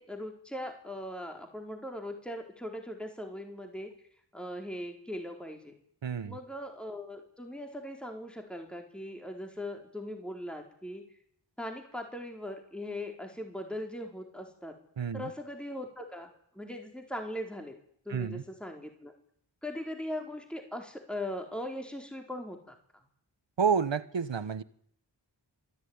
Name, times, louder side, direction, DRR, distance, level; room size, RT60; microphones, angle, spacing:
voice 1, 0.0-3.9 4.3-5.8 6.3-11.0 11.6-14.8 15.1-17.8 18.1-19.1 19.6-22.7, left 1 dB, ahead, 3 dB, 4.1 m, -40 dB
voice 2, 6.0-6.4 15.0-15.3 18.1-18.4 23.6-24.6, right 6 dB, 85° right, 15 dB, 1.3 m, -29 dB
26.5 x 15.5 x 9.7 m, 0.68 s
wide cardioid pair, 65°, 44 cm